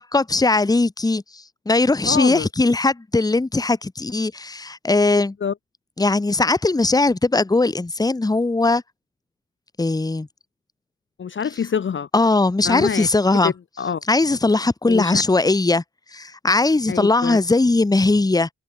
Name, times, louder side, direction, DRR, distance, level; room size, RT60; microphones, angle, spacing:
voice 1, 0.0-5.3 6.0-8.8 9.8-10.3 12.1-13.5 14.1-15.8 16.1-18.5, left 3 dB, 10° left, 1.1 m, -19 dB
voice 2, 2.0-2.5 5.4-5.5 11.2-12.1 12.6-13.1 13.4-14.0 14.9-15.2 16.9-17.4, left 7 dB, 40° left, 0.9 m, -25 dB
hypercardioid pair, 45°, 32 cm